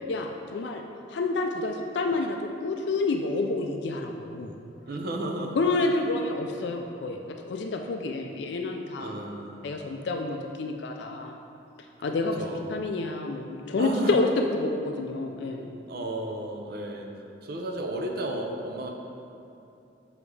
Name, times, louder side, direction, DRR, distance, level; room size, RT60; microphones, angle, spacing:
voice 1, 0.1-0.8 1.1-4.5 5.6-9.2 9.6-11.4 12.0-15.7, left 3 dB, 65° left, 3 dB, 0.4 m, -29 dB
voice 2, 4.9-5.6 9.0-9.7 12.0-12.7 13.8-14.2 15.9-17.1 17.4-18.9, right 1 dB, 55° right, 1 dB, 0.7 m, -33 dB
7.0 x 4.7 x 3.3 m, 2.8 s
head